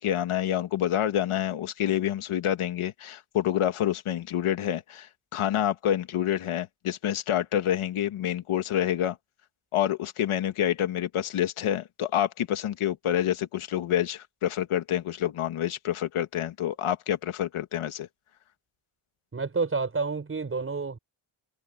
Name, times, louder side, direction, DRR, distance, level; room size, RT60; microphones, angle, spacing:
voice 1, 0.0-9.2 9.7-18.1, left 11 dB, 85° left, 1.6 m, -27 dB
voice 2, 19.3-21.0, right 4 dB, 25° right, 5.8 m, -29 dB
wide cardioid pair, 175°, 49 cm